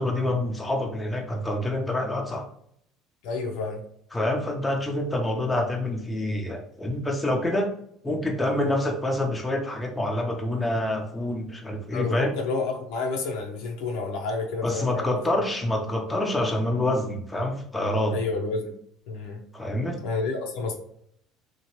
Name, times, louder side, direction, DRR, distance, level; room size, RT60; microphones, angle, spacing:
voice 1, 0.0-2.5 4.1-7.7 8.0-12.3 14.6-18.2 19.5-20.0, left 1 dB, 15° left, 1 dB, 0.6 m, -27 dB
voice 2, 3.2-3.8 11.9-15.1 18.1-18.8 19.1-19.4 20.0-20.8, left 3 dB, 75° left, 2 dB, 0.7 m, -29 dB
2.9 x 2.4 x 2.9 m, 0.68 s
supercardioid pair, 90°, 0 cm